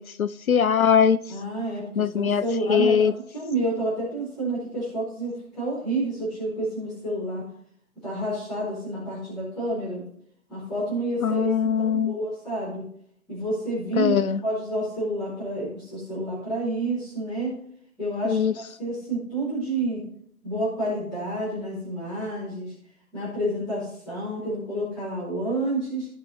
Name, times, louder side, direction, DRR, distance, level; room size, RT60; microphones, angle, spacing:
voice 1, 0.0-1.2 2.0-3.1 11.2-12.2 14.0-14.4 18.3-18.5, left 7 dB, 70° left, 14 dB, 0.6 m, -21 dB
voice 2, 1.3-7.4 8.0-10.0 10.5-11.5 11.8-12.8 13.3-17.5 18.0-20.0 20.4-22.7 23.1-26.1, right 1 dB, ahead, -21 dB, 1.3 m, -29 dB
16.0 x 5.6 x 2.9 m, 0.66 s
figure-of-eight pair, 175°, 43 cm